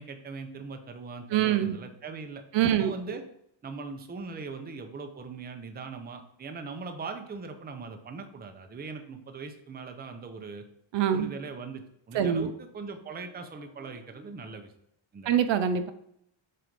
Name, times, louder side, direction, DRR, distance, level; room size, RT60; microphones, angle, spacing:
voice 1, 0.0-3.2 3.6-10.6 11.1-14.7 15.1-15.3, right 4 dB, 20° right, 6 dB, 0.6 m, -40 dB
voice 2, 1.3-1.8 2.5-2.9 10.9-11.3 12.1-12.5 15.3-15.9, right 9 dB, 65° right, 10 dB, 0.6 m, -24 dB
7.6 x 2.6 x 5.1 m, 0.74 s
cardioid pair, 155°, 47 cm